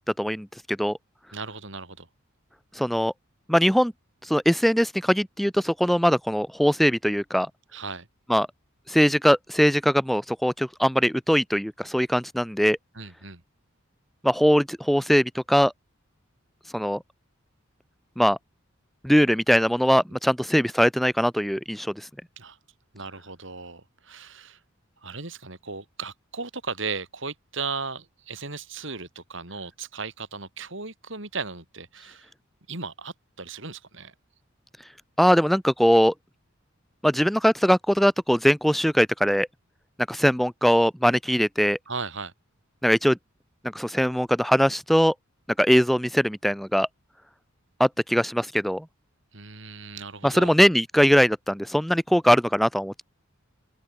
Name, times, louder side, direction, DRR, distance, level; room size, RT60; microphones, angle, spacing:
voice 1, 0.2-1.0 2.7-3.1 3.5-3.9 4.2-7.5 8.3-8.5 8.9-12.8 14.2-15.7 16.7-17.0 18.2-18.4 19.0-22.1 35.2-36.1 37.0-39.5 40.1-41.8 42.8-43.2 43.7-45.1 45.6-46.9 47.8-48.8 50.2-53.0, equal, ahead, 0.4 m, -21 dB
voice 2, 1.3-2.1 7.7-8.1 12.9-13.4 22.4-22.6 22.9-24.6 25.0-32.3 32.7-34.1 41.9-42.3 49.3-50.5, right 4 dB, 60° right, 4.1 m, -36 dB
open air
head